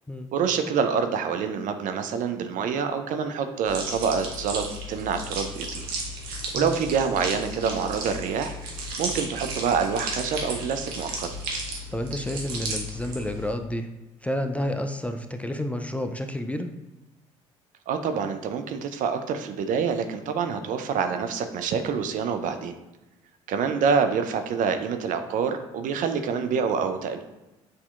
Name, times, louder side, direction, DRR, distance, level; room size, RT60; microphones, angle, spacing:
voice 1, 0.3-5.9 6.5-8.5 9.0-11.3 17.9-22.7 23.5-27.2, right 6 dB, 55° right, 8 dB, 0.5 m, -26 dB
sound 1, 3.6-13.5, right 1 dB, 75° right, 0.9 m, -34 dB
voice 2, 6.5-6.8 11.9-13.9 14.2-16.7, left 1 dB, 10° left, 7 dB, 0.3 m, -30 dB
6.4 x 2.8 x 2.4 m, 1.0 s
hypercardioid pair, 60°, 16 cm